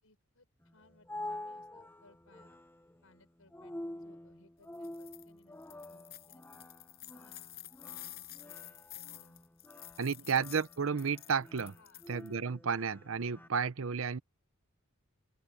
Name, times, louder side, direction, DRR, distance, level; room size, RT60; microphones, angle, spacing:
voice 1, 0.0-2.6 3.0-6.4 7.1-7.4 7.9-9.4 10.0-10.3 11.7-12.1, left 2 dB, 75° left, 6.5 m, -66 dB
sound 1, 0.6-13.5, left 1 dB, 10° left, 0.9 m, -48 dB
sound 2, 4.7-5.2 5.6-12.3, left 14 dB, 50° left, 5.6 m, -50 dB
voice 2, 10.0-11.7 12.1-14.2, right 6 dB, 65° right, 0.7 m, -32 dB
open air
head